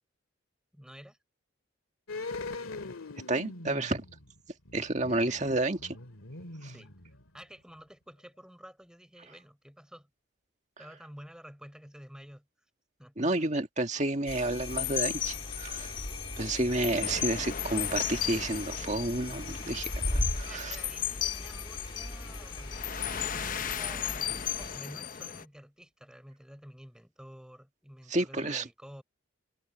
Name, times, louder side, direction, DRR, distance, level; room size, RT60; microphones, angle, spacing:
voice 1, 0.7-1.2 5.1-5.6 6.6-6.9 7.3-10.1 10.8-12.5 13.0-13.6 20.3-22.8 23.3-29.0, equal, 5° right, 4.0 m, -50 dB
sound 1, 2.1-7.5 7.8-7.9, left 3 dB, 90° left, 2.3 m, -42 dB
voice 2, 3.3-4.1 4.7-5.8 6.6-6.7 13.2-15.9 16.4-20.8 28.1-28.6, right 2 dB, 35° right, 1.9 m, -30 dB
sound 2, 14.3-24.8, left 1 dB, 25° left, 2.0 m, -38 dB
sound 3, 14.7-25.4, left 10 dB, 40° left, 0.7 m, -35 dB
head